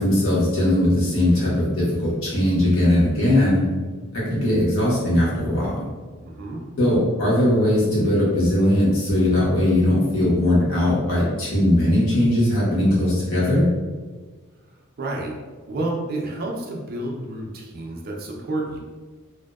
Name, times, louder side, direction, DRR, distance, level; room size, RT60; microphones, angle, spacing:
voice 1, 0.0-3.6 4.1-5.8 6.8-13.7, left 1 dB, 90° left, -7 dB, 1.0 m, -19 dB
voice 2, 6.2-6.6 15.0-15.4 15.7-18.8, right 2 dB, 45° right, -1 dB, 0.4 m, -30 dB
2.6 x 2.1 x 2.2 m, 1.4 s
head